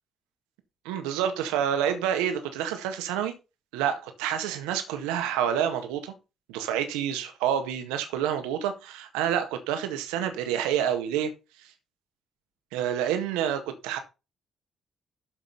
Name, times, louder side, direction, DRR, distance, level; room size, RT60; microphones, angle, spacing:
voice 1, 0.9-3.3 3.7-6.1 6.5-11.3 12.7-14.0, right 9 dB, 75° right, 1.7 m, -28 dB
12.5 x 5.9 x 4.0 m
hypercardioid pair, 40°, 0 cm